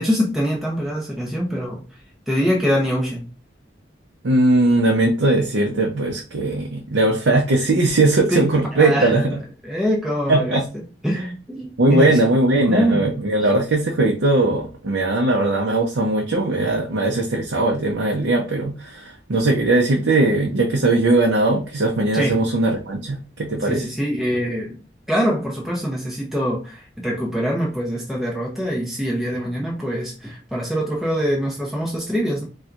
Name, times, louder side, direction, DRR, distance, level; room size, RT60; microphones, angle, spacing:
voice 1, 0.0-1.8 2.3-3.3 8.3-9.4 9.6-10.6 11.0-12.2 12.7-13.1 22.1-22.4 23.6-24.8 25.1-32.4, equal, ahead, -4 dB, 0.7 m, -24 dB
voice 2, 4.2-9.3 10.3-10.6 11.8-23.9, right 2 dB, 90° right, 0 dB, 0.6 m, -19 dB
4.3 x 2.3 x 2.5 m, 0.35 s
head